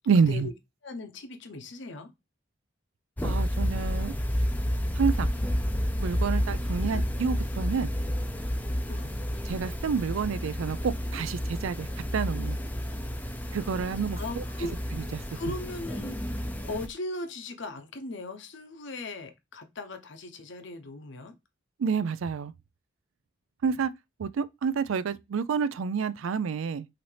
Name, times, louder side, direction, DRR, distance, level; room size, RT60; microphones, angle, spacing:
voice 1, 0.1-0.5 3.2-4.1 5.0-5.3 6.0-7.9 9.5-11.9 12.1-12.6 13.5-14.4 15.1-15.2 21.8-22.5 23.6-23.9 24.2-26.9, right 6 dB, 85° right, 0.4 m, -28 dB
voice 2, 0.8-2.1 6.8-7.0 8.9-9.1 13.8-14.7 15.3-16.2 16.6-21.3, left 2 dB, 65° left, 0.8 m, -38 dB
sound 1, 3.2-16.9, equal, 10° left, 0.4 m, -30 dB
5.7 x 2.7 x 3.3 m
head